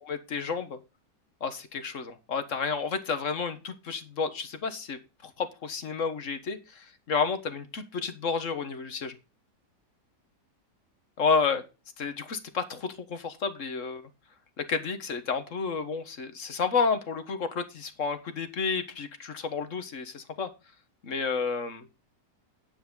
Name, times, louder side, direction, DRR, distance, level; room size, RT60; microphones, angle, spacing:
voice 1, 0.1-0.8 1.4-9.1 11.2-11.6 12.0-14.0 14.6-20.5 21.0-21.9, left 5 dB, 50° left, 9 dB, 1.6 m, -31 dB
10.0 x 8.5 x 3.8 m, 0.29 s
omnidirectional pair, 1.8 m